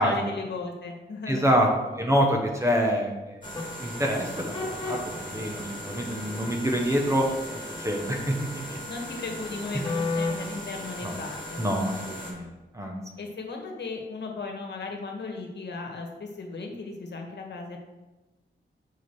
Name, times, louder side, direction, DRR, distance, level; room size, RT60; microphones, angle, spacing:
voice 1, 0.0-1.5 8.9-11.6 13.2-17.8, left 3 dB, 60° left, 2 dB, 1.3 m, -36 dB
voice 2, 1.3-1.7 1.9-3.4 3.8-4.6 4.8-7.3 7.5-8.8 9.7-9.9 11.0-11.1 11.6-13.0, equal, 15° right, 1 dB, 0.9 m, -26 dB
sound 1, 3.4-12.3, left 2 dB, 25° left, 1.9 m, -35 dB
6.8 x 4.7 x 4.6 m, 1.1 s
wide cardioid pair, 150°, 19 cm